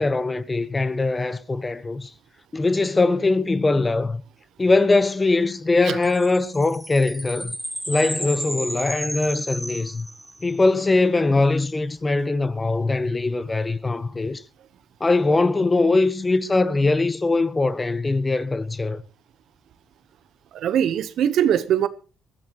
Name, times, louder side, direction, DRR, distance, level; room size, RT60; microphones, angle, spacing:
voice 1, 0.0-2.1 2.5-4.2 4.6-7.6 7.9-10.1 10.4-14.4 15.0-19.0, left 3 dB, 25° left, 1.1 m, -21 dB
sound 1, 6.0-10.6, right 1 dB, 5° right, 1.2 m, -33 dB
voice 2, 20.5-21.9, right 9 dB, 75° right, 1.1 m, -21 dB
20.5 x 14.5 x 3.1 m
cardioid pair, 90°, 0 cm